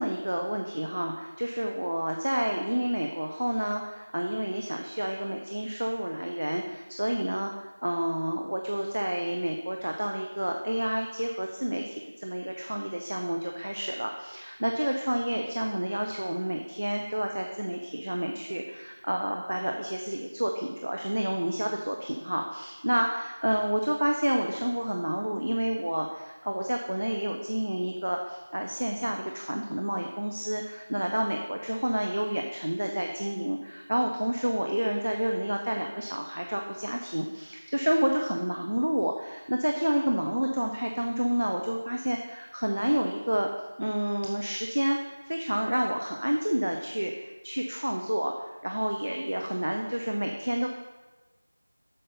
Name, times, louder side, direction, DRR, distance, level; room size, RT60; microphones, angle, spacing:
voice 1, 0.0-43.5 43.8-50.7, equal, 65° right, 2 dB, 0.7 m, -29 dB
7.7 x 6.4 x 3.9 m, 1.2 s
figure-of-eight pair, 175°, 0 cm